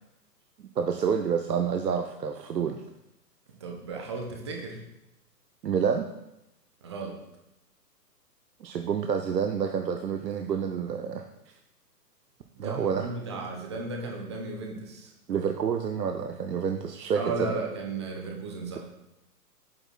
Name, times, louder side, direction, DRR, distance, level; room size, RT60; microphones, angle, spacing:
voice 1, 0.8-2.8 5.6-6.1 8.6-11.5 12.6-13.1 15.3-17.6, right 7 dB, 75° right, 5 dB, 0.6 m, -28 dB
voice 2, 3.6-4.8 6.8-7.2 12.6-15.1 17.1-18.8, right 3 dB, 20° right, 1 dB, 0.5 m, -35 dB
7.8 x 7.2 x 2.3 m, 0.88 s
figure-of-eight pair, 125°, 50 cm